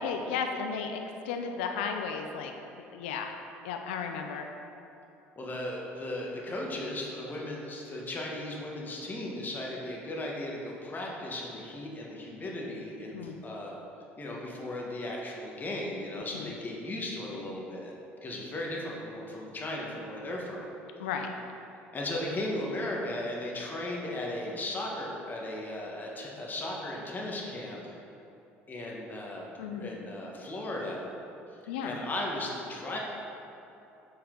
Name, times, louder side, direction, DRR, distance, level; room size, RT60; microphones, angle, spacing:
voice 1, 0.0-2.5 2.9-3.3 3.6-4.4 13.1-13.3 16.3-16.5 21.0-21.3 29.6-30.0 31.7-32.0, left 6 dB, 85° left, 4 dB, 0.5 m, -34 dB
voice 2, 5.4-13.8 14.2-17.9 18.2-20.7 21.0-21.1 21.9-28.0 28.7-29.5 29.8-31.1 31.8-33.0, left 1 dB, 30° left, -2 dB, 1.4 m, -36 dB
7.3 x 4.3 x 3.8 m, 2.9 s
hypercardioid pair, 70°, 6 cm